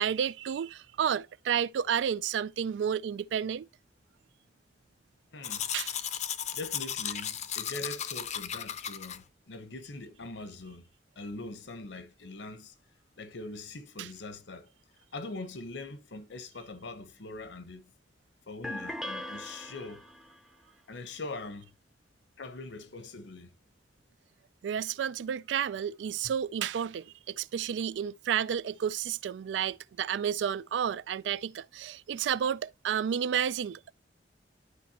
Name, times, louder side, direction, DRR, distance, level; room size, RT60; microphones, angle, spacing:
voice 1, 0.0-3.7 5.7-5.9 14.0-14.1 24.6-33.9, right 8 dB, 75° right, 0.3 m, -31 dB
voice 2, 5.3-5.7 6.5-10.9 11.2-12.7 13.2-14.7 15.1-17.9 18.5-20.1 20.9-21.7 22.4-23.5, left 2 dB, 85° left, 1.0 m, -42 dB
Domestic sounds home sounds, 5.4-9.2, left 9 dB, 40° left, 0.6 m, -35 dB
sound 1, 18.6-20.4, left 1 dB, ahead, 0.5 m, -39 dB
11.5 x 4.3 x 2.9 m
head